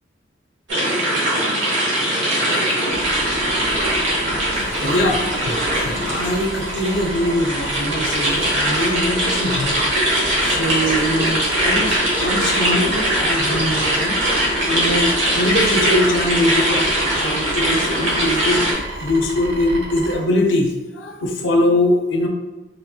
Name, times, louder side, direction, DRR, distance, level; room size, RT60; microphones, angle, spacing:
sound 1, 0.7-18.7, right 1 dB, 85° right, 1.0 m, -21 dB
sound 2, 2.9-20.2, right 1 dB, 65° right, 0.5 m, -32 dB
voice 1, 4.7-5.2 5.7-9.8 10.4-14.2 14.7-22.3, left 1 dB, 85° left, 1 dB, 0.4 m, -22 dB
3.0 x 2.6 x 2.3 m, 1.1 s
head